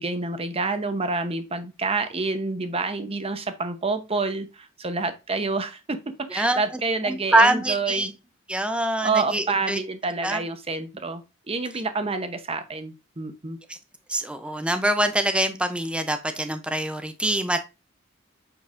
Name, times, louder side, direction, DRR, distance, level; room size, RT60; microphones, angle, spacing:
voice 1, 0.0-6.0 6.3-8.1 9.0-13.6, right 3 dB, 30° right, 8 dB, 0.9 m, -28 dB
voice 2, 6.3-6.6 7.0-8.1 8.5-9.8 10.2-10.4 13.7-13.8 14.1-17.6, right 1 dB, 5° right, 8 dB, 0.6 m, -24 dB
8.4 x 4.6 x 2.5 m, 0.27 s
head